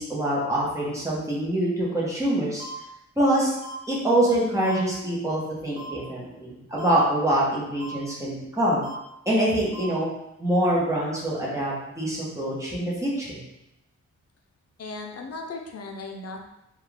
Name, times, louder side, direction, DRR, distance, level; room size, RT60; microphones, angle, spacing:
voice 1, 0.0-2.6 3.2-3.5 3.9-8.8 9.3-10.1 10.4-13.4, right 1 dB, 10° right, -6 dB, 1.1 m, -25 dB
sound 1, 2.6-2.7 3.6-3.7 4.6-4.8 5.8-5.9 6.8-6.9 7.8-7.9 8.8-8.9 9.7-9.9, left 2 dB, 55° right, 0.8 m, -39 dB
voice 2, 14.8-16.4, left 3 dB, 55° left, 2 dB, 0.6 m, -36 dB
4.1 x 2.4 x 3.4 m, 0.88 s
wide cardioid pair, 155°, 30 cm